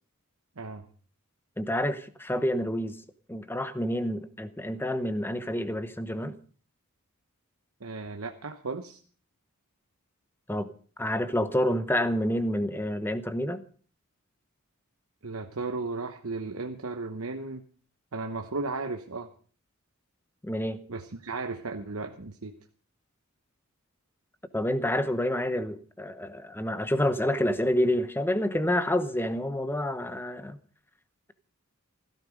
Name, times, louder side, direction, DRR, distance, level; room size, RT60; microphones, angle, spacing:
voice 1, 1.6-3.0 3.3-6.3 10.5-10.7 11.0-13.6 20.4-20.8 24.5-30.6, left 1 dB, 10° left, 12 dB, 0.9 m, -28 dB
voice 2, 7.8-9.0 15.2-17.7 18.1-19.3 20.9-22.5, right 3 dB, 75° right, 5 dB, 1.1 m, -35 dB
16.0 x 13.5 x 5.2 m, 0.43 s
head